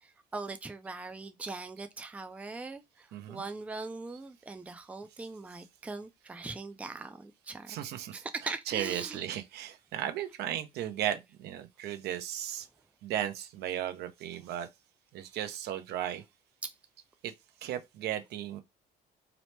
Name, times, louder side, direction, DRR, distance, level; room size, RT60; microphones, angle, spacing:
voice 1, 0.0-7.8 8.1-9.2 16.6-16.7, right 3 dB, 10° right, 0.4 m, -41 dB
voice 2, 3.1-3.4 7.7-12.7 13.0-14.7 15.1-16.2 17.2-17.3 17.6-18.6, right 11 dB, 75° right, 0.6 m, -35 dB
2.9 x 2.1 x 3.1 m
cardioid pair, 110°, 17 cm